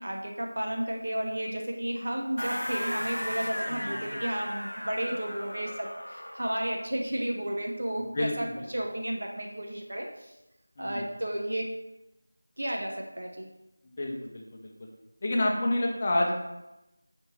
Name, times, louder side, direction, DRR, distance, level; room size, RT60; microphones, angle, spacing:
voice 1, 0.0-10.3 10.8-11.8 12.6-13.5, right 1 dB, 60° right, 1 dB, 0.6 m, -33 dB
sound 1, 2.4-6.8, equal, 80° left, 0.3 m, -36 dB
voice 2, 8.1-8.7 10.8-11.1 14.0-14.7 15.2-16.3, left 1 dB, 30° left, -1 dB, 0.6 m, -29 dB
5.2 x 2.7 x 3.1 m, 0.94 s
figure-of-eight pair, 170°, 0 cm